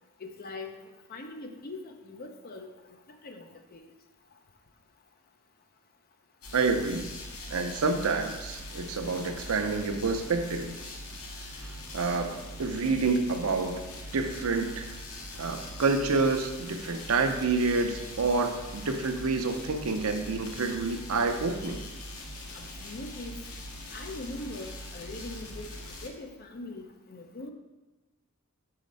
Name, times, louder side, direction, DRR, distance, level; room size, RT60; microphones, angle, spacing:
voice 1, 0.2-2.7 3.2-3.9 22.5-23.4 23.9-27.5, left 2 dB, 45° left, 4 dB, 0.6 m, -42 dB
sound 1, 6.4-26.1, left 1 dB, 85° left, 0.9 m, -42 dB
voice 2, 6.5-7.1 7.5-10.8 11.9-14.9 15.4-21.9, right 4 dB, 75° right, 6 dB, 0.6 m, -28 dB
5.8 x 4.2 x 5.2 m, 1.1 s
head